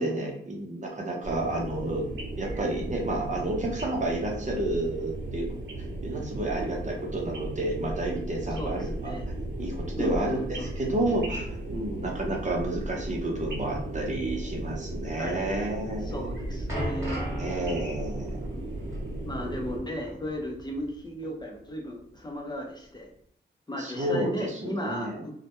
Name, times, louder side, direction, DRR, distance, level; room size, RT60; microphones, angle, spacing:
voice 1, 0.0-2.1 2.3-5.5 6.0-9.1 9.6-16.3 17.4-18.5 23.8-24.3 24.6-25.2, right 1 dB, 40° right, -1 dB, 0.7 m, -30 dB
sound 1, 1.2-19.8, right 1 dB, 80° right, 0.7 m, -35 dB
voice 2, 8.5-9.2 10.0-11.0 15.2-15.5 16.0-17.3 18.5-18.7 19.2-23.1 23.7-25.4, equal, 20° left, 0 dB, 0.5 m, -35 dB
sound 2, 16.2-21.0 21.2-21.4 22.1-22.2, equal, 15° right, 1.3 m, -38 dB
2.1 x 2.1 x 2.9 m, 0.67 s
cardioid pair, 80°, 19 cm